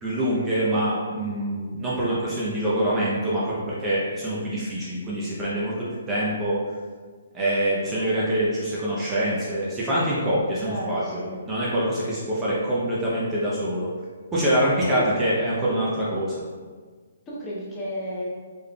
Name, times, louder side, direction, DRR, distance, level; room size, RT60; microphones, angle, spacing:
voice 1, 0.0-5.7 6.1-6.6 7.3-13.9 14.3-16.5, right 1 dB, 15° right, -8 dB, 0.6 m, -25 dB
voice 2, 10.6-11.4 14.9-15.0 17.3-18.3, equal, 15° left, -7 dB, 0.8 m, -33 dB
3.4 x 3.4 x 2.3 m, 1.5 s
hypercardioid pair, 150°, 0 cm